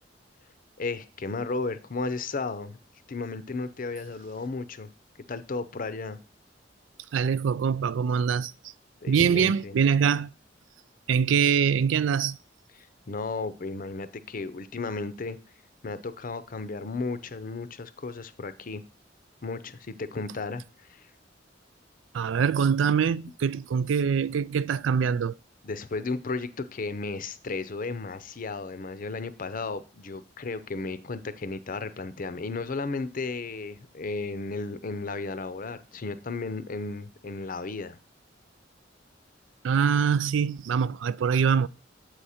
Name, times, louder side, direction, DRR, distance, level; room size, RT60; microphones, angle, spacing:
voice 1, 0.8-2.8 3.1-4.9 5.3-6.2 9.0-9.8 12.8-15.4 15.8-18.8 19.4-20.6 20.9-21.0 25.6-38.0, left 3 dB, 45° left, 0.6 m, -34 dB
voice 2, 7.1-8.5 9.1-10.3 11.1-12.4 22.1-25.3 39.6-41.7, right 7 dB, 85° right, 0.4 m, -24 dB
7.7 x 4.9 x 4.2 m
head